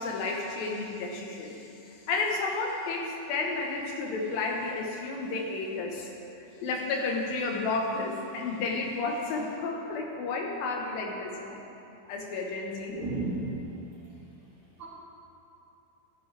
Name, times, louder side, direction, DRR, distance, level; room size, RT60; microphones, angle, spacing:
voice 1, 0.0-6.1 6.4-11.6 12.1-12.9, left 3 dB, 75° left, 0 dB, 3.0 m, -32 dB
voice 2, 12.9-13.6 14.8-14.9, right 2 dB, 50° right, -9 dB, 3.8 m, -32 dB
14.0 x 11.5 x 3.4 m, 2.9 s
omnidirectional pair, 4.2 m